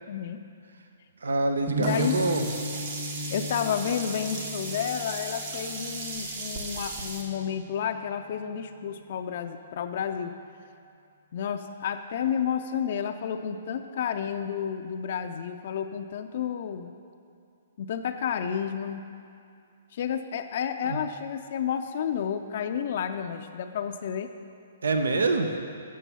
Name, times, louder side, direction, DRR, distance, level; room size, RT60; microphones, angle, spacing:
voice 1, 0.1-0.4 1.8-2.2 3.3-10.3 11.3-16.9 17.8-19.0 19.9-24.3, left 8 dB, 55° left, 6 dB, 0.4 m, -31 dB
voice 2, 1.2-2.4 20.9-21.0 24.8-25.5, right 3 dB, 80° right, 6 dB, 0.7 m, -25 dB
sound 1, 1.7-7.7, equal, 25° right, 1.0 m, -37 dB
Sink (filling or washing), 1.8-7.2, right 3 dB, 55° right, 1.5 m, -36 dB
7.5 x 6.1 x 6.7 m, 2.5 s
hypercardioid pair, 135°, 0 cm